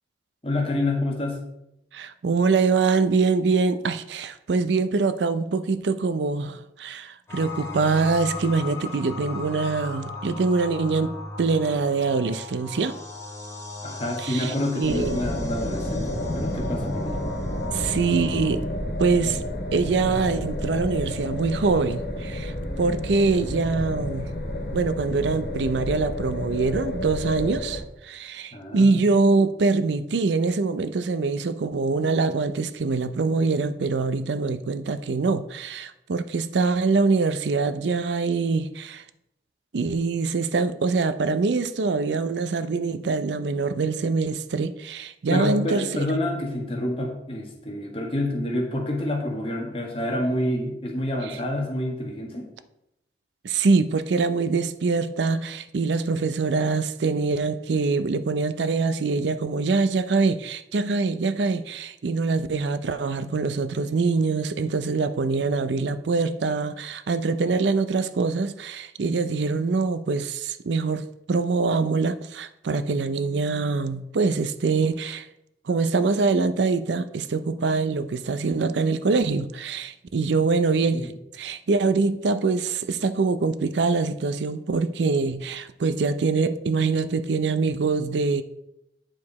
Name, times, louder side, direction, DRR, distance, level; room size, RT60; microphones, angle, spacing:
voice 1, 0.4-1.4 13.8-17.2 28.5-29.0 45.3-52.5 80.9-81.1, left 1 dB, 30° left, 0 dB, 1.5 m, -28 dB
voice 2, 1.9-13.0 14.2-15.2 17.7-18.6 19.0-19.4 19.7-24.3 24.7-39.0 39.7-46.0 53.4-75.3 75.7-88.4, right 4 dB, 85° right, 13 dB, 0.5 m, -24 dB
sound 1, 7.3-18.5, left 3 dB, 15° left, 1.7 m, -38 dB
sound 2, 14.8-27.8, left 1 dB, 65° left, 2.1 m, -30 dB
8.9 x 4.8 x 4.2 m, 0.83 s
head